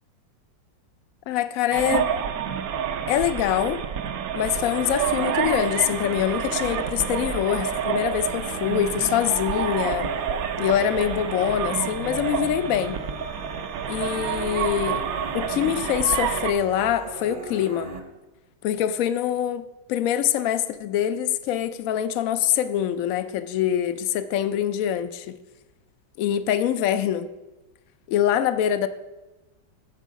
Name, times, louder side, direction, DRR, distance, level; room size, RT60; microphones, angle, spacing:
voice 1, 1.3-2.1 3.1-3.8 4.3-10.1 10.6-13.0 13.9-15.1 15.3-17.9 18.6-25.4 26.2-27.3 28.1-28.9, left 10 dB, 70° left, 11 dB, 0.8 m, -24 dB
sound 1, 1.7-16.5, right 8 dB, 65° right, 0.9 m, -28 dB
sound 2, 4.3-18.0, right 2 dB, 40° right, 0.8 m, -39 dB
13.5 x 4.6 x 5.1 m, 1.1 s
omnidirectional pair, 1.9 m